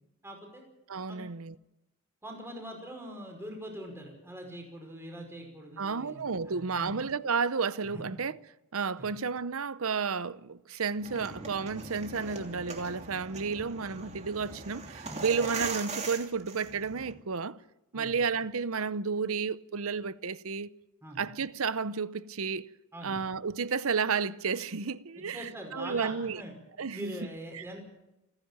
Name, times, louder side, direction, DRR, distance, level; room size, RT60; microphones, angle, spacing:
voice 1, 0.2-0.6 1.1-1.3 2.2-6.9 7.9-8.0 9.0-9.1 17.9-18.1 21.0-21.2 22.9-23.2 25.2-26.5 26.9-27.8, right 1 dB, 10° right, 5.3 m, -43 dB
voice 2, 0.9-1.5 5.8-8.4 8.7-17.6 17.9-20.7 21.2-22.7 23.0-26.4 26.8-27.2 27.5-27.6, right 5 dB, 70° right, 0.8 m, -32 dB
sound 1, 11.0-17.1, right 4 dB, 30° right, 2.9 m, -40 dB
29.0 x 10.5 x 8.8 m
head